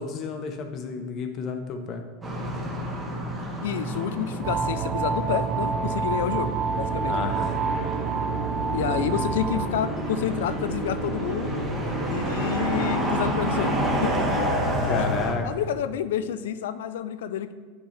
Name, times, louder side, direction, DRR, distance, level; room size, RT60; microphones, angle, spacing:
voice 1, 0.0-2.0 7.1-7.6 8.9-9.3 14.9-15.5, left 5 dB, 40° left, 5 dB, 0.9 m, -31 dB
sound 1, 2.2-15.3, right 1 dB, 10° right, 1.5 m, -29 dB
voice 2, 3.6-6.5 6.8-7.3 8.7-11.7 12.1-13.7 14.0-14.1 14.8-15.1 15.4-17.5, left 9 dB, 85° left, 12 dB, 0.4 m, -29 dB
sound 2, 4.4-9.7, right 6 dB, 40° right, 0.3 m, -28 dB
9.7 x 5.3 x 3.3 m, 1.5 s
supercardioid pair, 125°, 0 cm